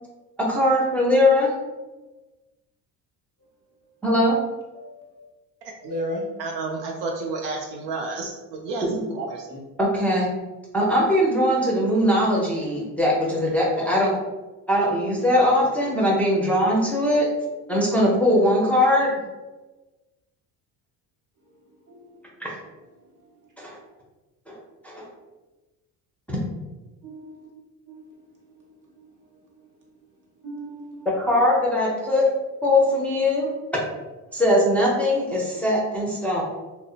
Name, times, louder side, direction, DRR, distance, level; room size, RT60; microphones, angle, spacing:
voice 1, 0.4-1.5 4.0-4.4 8.8-8.9 9.8-10.3 10.7-14.1 14.7-17.3 17.7-19.1 22.4-22.5 23.6-23.8 24.5-24.6 24.8-25.1 26.3-26.4 31.2-32.2 32.6-33.8 34.3-36.4, left 1 dB, 5° left, -5 dB, 0.6 m, -21 dB
voice 2, 4.7-5.2 5.8-6.2 21.9-22.2 27.0-27.5 27.9-28.6 29.0-29.1 30.4-31.1, equal, 45° right, -3 dB, 1.0 m, -35 dB
voice 3, 6.4-8.8 9.1-9.5, right 3 dB, 70° right, 0 dB, 0.5 m, -31 dB
2.6 x 2.0 x 2.4 m, 1.1 s
supercardioid pair, 75°, 45 cm